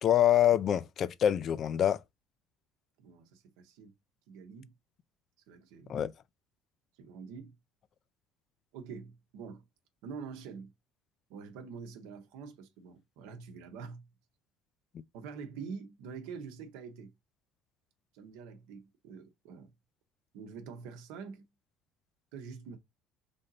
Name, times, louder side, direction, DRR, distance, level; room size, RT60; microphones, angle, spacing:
voice 1, 0.0-2.0 5.9-6.1, left 10 dB, 50° left, 0.3 m, -25 dB
voice 2, 3.0-3.9 4.3-4.7 5.5-6.0 7.0-7.5 8.7-9.6 10.0-10.7 11.3-14.1 15.1-17.1 18.1-19.7 20.3-21.5 22.3-22.8, right 5 dB, 80° right, 0.8 m, -45 dB
3.4 x 2.6 x 4.0 m
supercardioid pair, 95°, 0 cm